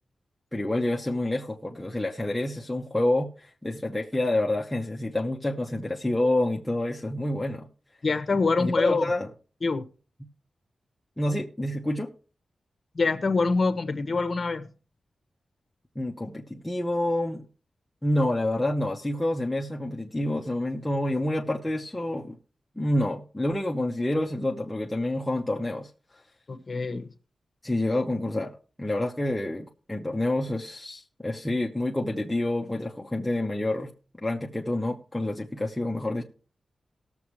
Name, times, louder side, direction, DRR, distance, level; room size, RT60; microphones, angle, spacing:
voice 1, 0.5-7.7 8.6-9.3 11.2-12.1 16.0-17.4 18.0-22.4 22.8-25.9 27.6-33.9 34.2-36.2, left 1 dB, 5° left, 0.9 m, -28 dB
voice 2, 8.0-9.0 9.6-9.8 12.9-14.7 26.5-27.1, left 3 dB, 40° left, 1.2 m, -25 dB
19.5 x 7.1 x 3.2 m
wide cardioid pair, 130°, 0 cm